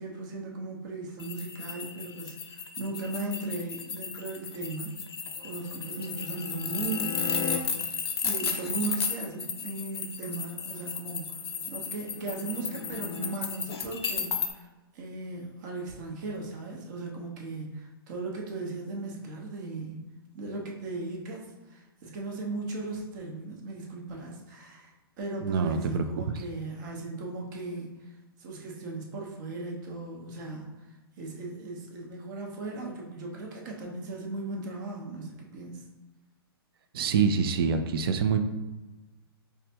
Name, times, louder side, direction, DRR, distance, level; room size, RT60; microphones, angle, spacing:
voice 1, 0.0-5.0 5.4-11.4 11.7-14.7 14.9-20.0 20.3-21.4 21.7-28.1 28.4-30.7 31.2-35.8, right 3 dB, 50° right, 0 dB, 0.9 m, -37 dB
sound 1, 1.2-14.5, left 6 dB, 85° left, 0.5 m, -34 dB
sound 2, 5.4-7.6 11.0-13.3, left 9 dB, 15° left, 0.4 m, -40 dB
voice 2, 25.4-26.4 36.9-38.4, right 6 dB, 65° right, 8 dB, 0.4 m, -26 dB
4.7 x 2.2 x 2.9 m, 1.1 s
hypercardioid pair, 130°, 13 cm